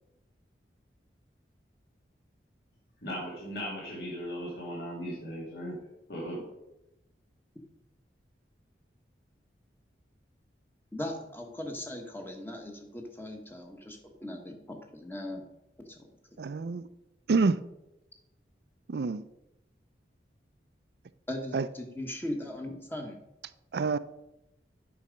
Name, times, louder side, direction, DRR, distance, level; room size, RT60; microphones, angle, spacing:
voice 1, 3.0-5.8 6.1-6.4, equal, 60° left, 2.4 m, -37 dB
voice 2, 10.9-15.4 15.8-16.1 21.3-23.2, left 1 dB, 10° left, 1.1 m, -39 dB
voice 3, 16.4-16.9 17.3-17.6 18.9-19.3 21.5-21.7 23.7-24.0, right 4 dB, 65° right, 0.4 m, -27 dB
8.4 x 5.6 x 5.1 m
head